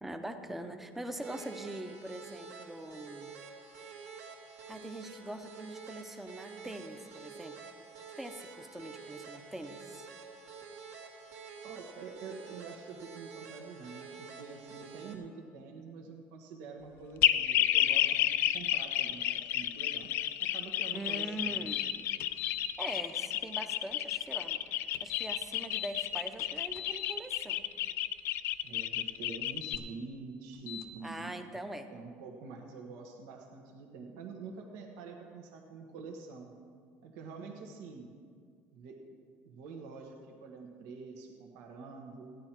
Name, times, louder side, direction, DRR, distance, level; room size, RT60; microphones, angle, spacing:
voice 1, 0.0-3.3 4.7-7.6 8.2-10.1 20.9-21.9 22.8-24.6 25.0-27.6 31.0-31.9, right 1 dB, 5° right, 6 dB, 0.6 m, -42 dB
sound 1, 1.2-15.2, right 5 dB, 55° right, 1.5 m, -49 dB
voice 2, 11.6-18.3 18.5-20.1 20.4-21.7 28.6-31.6 31.9-36.6 37.0-38.1 38.7-39.0 39.4-42.4, right 4 dB, 85° right, 2 dB, 1.3 m, -46 dB
sound 2, 17.2-29.8, left 13 dB, 50° left, 0.3 m, -31 dB
sound 3, 21.7-21.9 22.2-22.6 24.9-25.9 26.4-27.2 29.5-29.8 30.7-30.9, left 11 dB, 70° left, 0.7 m, -40 dB
15.5 x 10.5 x 4.4 m, 2.1 s
cardioid pair, 180°, 5 cm